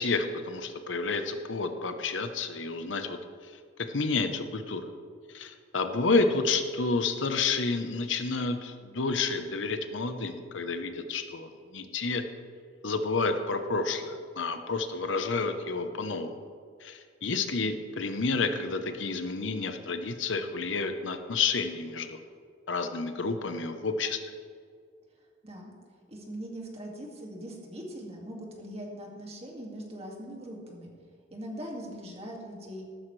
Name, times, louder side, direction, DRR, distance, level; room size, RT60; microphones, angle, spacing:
voice 1, 0.0-3.2 3.9-4.9 5.3-12.2 12.8-16.3 16.8-22.2 22.7-24.2, left 4 dB, 80° left, 7 dB, 0.9 m, -30 dB
voice 2, 26.1-30.9 31.3-32.8, equal, 35° right, 0 dB, 2.2 m, -41 dB
14.5 x 12.0 x 3.3 m, 2.2 s
head